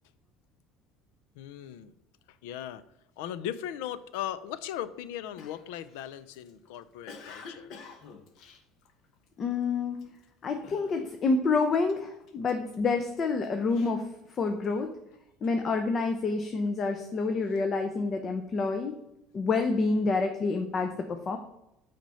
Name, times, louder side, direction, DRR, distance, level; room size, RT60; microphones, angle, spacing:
voice 1, 1.4-1.9 2.3-2.8 3.2-7.7, left 11 dB, 85° left, 15 dB, 0.4 m, -38 dB
Cough, 5.4-9.4 9.9-10.2 10.6-11.3 11.6-12.8 13.3-14.8, left 5 dB, 60° left, 1.0 m, -49 dB
voice 2, 9.4-10.0 10.4-14.1 14.4-14.9 15.4-18.9 19.3-21.4, left 4 dB, 35° left, 6 dB, 0.7 m, -28 dB
6.0 x 4.3 x 5.6 m, 0.84 s
supercardioid pair, 110°, 0 cm